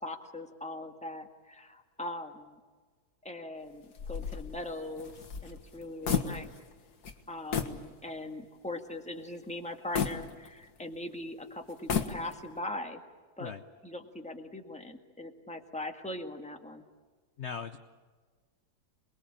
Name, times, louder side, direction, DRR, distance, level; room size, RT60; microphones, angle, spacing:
voice 1, 0.0-2.6 3.2-5.1 5.4-6.5 7.3-13.0 13.4-13.5 13.8-16.8, left 1 dB, 5° left, 4 dB, 1.7 m, -40 dB
sound 1, 3.9-6.8 7.0-7.2 7.5-7.8 8.3-8.4 9.9-10.9 11.7-12.6, left 6 dB, 65° left, 2.1 m, -33 dB
voice 2, 17.4-17.8, left 6 dB, 50° left, 8 dB, 1.0 m, -38 dB
27.5 x 21.0 x 8.8 m, 1.4 s
omnidirectional pair, 1.8 m